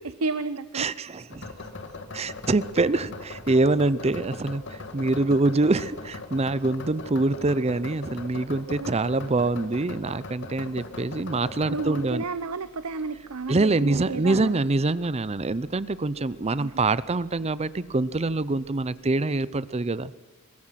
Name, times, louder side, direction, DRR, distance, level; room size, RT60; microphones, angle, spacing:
voice 1, 0.2-0.9 8.8-9.0 11.7-14.7 16.6-16.8, right 3 dB, 90° right, 12 dB, 0.9 m, -31 dB
voice 2, 0.7-1.5 2.1-12.2 13.5-20.2, right 2 dB, 30° right, 17 dB, 0.6 m, -25 dB
sound 1, 1.3-18.8, left 3 dB, 55° left, 2.2 m, -42 dB
24.0 x 21.0 x 5.9 m, 1.2 s
head